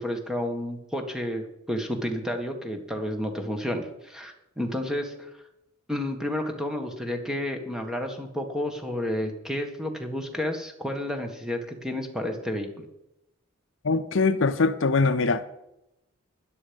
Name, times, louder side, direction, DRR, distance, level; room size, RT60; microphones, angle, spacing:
voice 1, 0.0-5.3 5.9-12.9, left 1 dB, 5° right, 1.5 m, -31 dB
voice 2, 13.8-15.4, left 4 dB, 60° left, 0.6 m, -22 dB
12.5 x 10.5 x 5.3 m
head